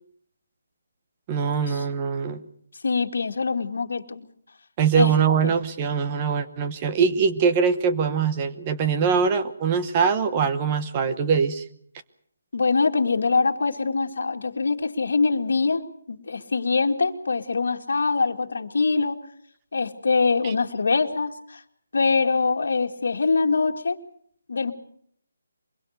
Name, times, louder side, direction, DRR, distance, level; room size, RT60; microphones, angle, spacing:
voice 1, 1.3-2.4 4.8-11.6 20.4-20.5, right 6 dB, 15° right, 9 dB, 1.0 m, -22 dB
voice 2, 2.8-4.3 4.9-5.1 5.4-5.5 12.5-19.2 19.7-21.6 21.9-24.0 24.5-24.7, left 4 dB, 60° left, 4 dB, 2.2 m, -23 dB
23.5 x 22.0 x 6.7 m, 0.65 s
hypercardioid pair, 175°, 0 cm